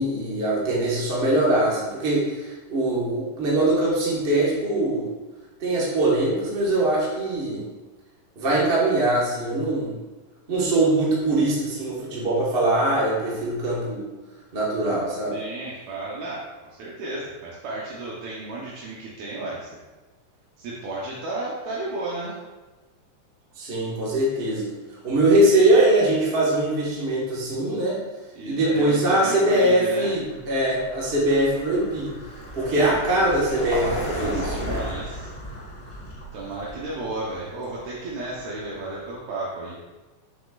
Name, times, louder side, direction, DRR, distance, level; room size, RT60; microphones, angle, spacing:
voice 1, 0.0-5.1 5.6-7.6 8.3-10.0 10.5-14.1 14.5-15.3 23.6-24.7 25.0-28.0 28.4-32.1 32.5-34.8, right 1 dB, 45° right, -5 dB, 0.7 m, -22 dB
voice 2, 15.3-16.4 16.7-19.8 20.6-22.4 28.4-30.4 32.7-33.0 34.1-35.3 36.3-39.8, right 2 dB, 70° right, -6 dB, 2.1 m, -33 dB
Vehicle, 30.2-39.0, equal, 65° left, 0.6 m, -35 dB
7.6 x 6.4 x 2.4 m, 1.2 s
omnidirectional pair, 3.6 m